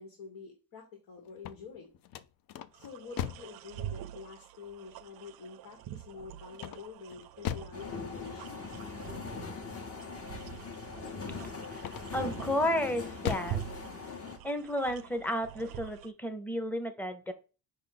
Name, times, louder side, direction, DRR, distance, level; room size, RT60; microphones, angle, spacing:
voice 1, 0.0-1.9 2.7-8.6, left 5 dB, 85° left, 0 dB, 1.7 m, -47 dB
sound 1, 1.3-3.6 6.5-7.8 11.7-12.3 12.8-13.6, left 10 dB, 65° left, 0.5 m, -38 dB
sound 2, 2.7-16.1, right 12 dB, 75° right, 0.5 m, -46 dB
sound 3, 7.7-14.4, left 4 dB, 40° left, 1.0 m, -41 dB
voice 2, 12.1-13.6 14.4-17.3, left 1 dB, 5° left, 7 dB, 0.7 m, -32 dB
5.3 x 2.5 x 3.9 m, 0.32 s
cardioid pair, 110°, 37 cm